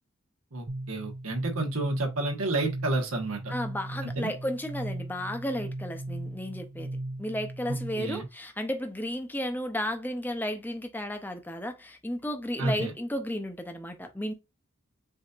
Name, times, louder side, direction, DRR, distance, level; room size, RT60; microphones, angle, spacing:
voice 1, 0.5-3.5 4.0-4.3 7.7-8.3 12.6-12.9, right 2 dB, 80° right, 1.4 m, -30 dB
sound 1, 0.7-8.2, right 1 dB, 40° right, 0.9 m, -38 dB
voice 2, 3.5-6.9 7.2-14.3, equal, 10° left, 0.6 m, -33 dB
7.3 x 2.8 x 2.5 m
head